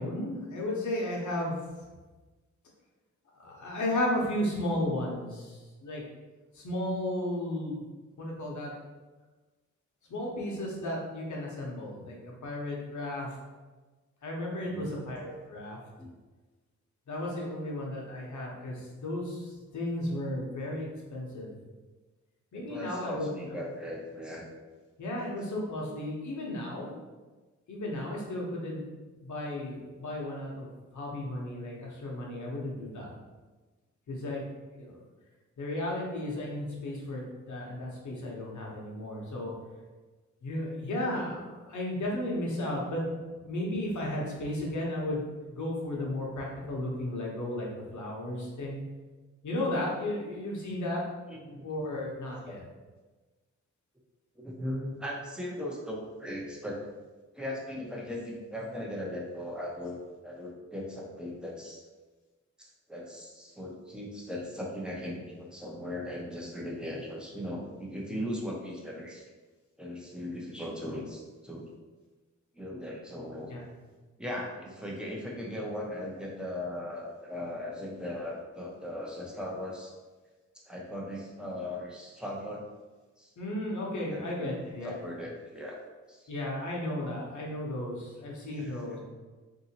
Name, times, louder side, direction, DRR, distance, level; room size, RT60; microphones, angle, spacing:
voice 1, 0.0-1.6 3.4-6.0 6.5-7.8 8.2-8.7 10.1-13.3 14.2-15.8 17.1-21.5 22.5-23.3 25.0-26.9 27.7-28.8 29.2-30.7 30.9-33.1 34.1-34.4 34.8-35.0 35.6-39.5 40.4-43.0 43.3-48.8 49.4-51.0 51.6-52.6 73.5-73.6 83.4-84.9 86.3-89.0, left 1 dB, 70° left, -3 dB, 1.0 m, -34 dB
voice 2, 14.6-15.0 16.0-16.1 22.5-24.5 51.3-51.9 54.4-56.8 57.3-60.0 60.2-61.8 62.6-69.2 69.8-71.7 72.5-73.5 74.2-79.9 80.7-82.7 83.2-83.3 84.0-84.5 84.8-85.8 86.1-86.3 88.5-89.0, left 1 dB, 5° right, -3 dB, 0.6 m, -38 dB
3.7 x 2.7 x 2.8 m, 1.3 s
wide cardioid pair, 125°, 31 cm